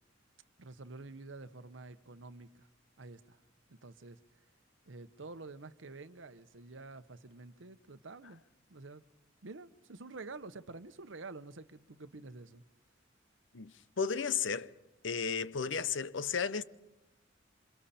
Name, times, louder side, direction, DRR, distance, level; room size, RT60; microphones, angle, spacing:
voice 1, 0.6-2.7 3.0-3.4 3.7-4.2 4.9-8.4 8.7-9.0 9.4-12.6, right 3 dB, 80° right, 1.0 m, -49 dB
voice 2, 13.5-14.7 15.0-16.6, left 6 dB, 75° left, 0.8 m, -34 dB
27.5 x 26.5 x 4.3 m
head